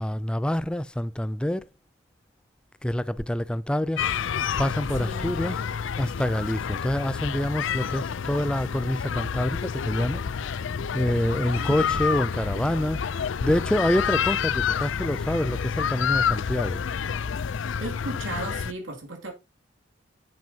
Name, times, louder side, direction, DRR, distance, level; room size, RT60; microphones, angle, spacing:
voice 1, 0.0-1.7 2.8-4.1 4.6-5.6 6.0-10.2 10.6-16.8, left 1 dB, 5° left, 0.3 m, -27 dB
sound 1, 4.0-18.7, left 7 dB, 70° left, 0.5 m, -29 dB
voice 2, 5.0-5.3 11.3-12.0 17.8-19.3, right 2 dB, 85° right, 2.5 m, -36 dB
9.1 x 7.7 x 2.8 m
head